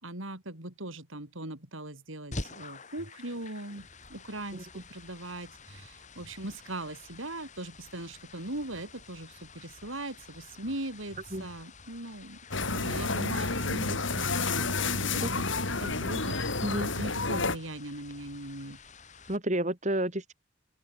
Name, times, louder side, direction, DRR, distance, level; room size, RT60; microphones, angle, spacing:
voice 1, 0.0-12.4 12.6-16.4 16.9-18.8, right 1 dB, 85° right, 5.4 m, -40 dB
sound 1, 2.3-19.4, left 3 dB, 35° left, 6.2 m, -48 dB
sound 2, 12.5-17.6, left 3 dB, 70° left, 3.9 m, -30 dB
voice 2, 19.3-20.3, right 1 dB, 35° right, 3.4 m, -30 dB
open air
head